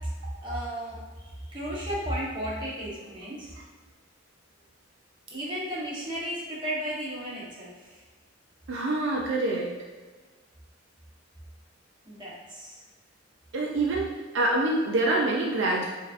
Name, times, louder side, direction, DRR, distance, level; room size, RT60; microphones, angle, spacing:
voice 1, 0.4-3.5 5.3-8.0 12.0-12.8, equal, 25° right, -7 dB, 1.1 m, -34 dB
voice 2, 8.7-9.7 13.5-15.9, right 2 dB, 65° right, -2 dB, 0.4 m, -26 dB
5.0 x 2.8 x 2.4 m, 1.4 s
head